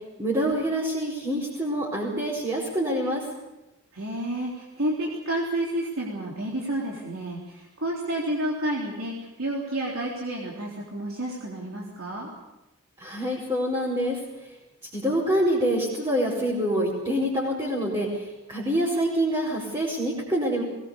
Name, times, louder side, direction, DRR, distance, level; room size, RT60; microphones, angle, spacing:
voice 1, 0.2-3.2 13.0-14.5 14.9-20.6, equal, 20° right, -5 dB, 4.8 m, -26 dB
voice 2, 3.9-12.3, right 1 dB, 70° right, -3 dB, 3.7 m, -30 dB
22.0 x 20.0 x 7.0 m, 0.97 s
head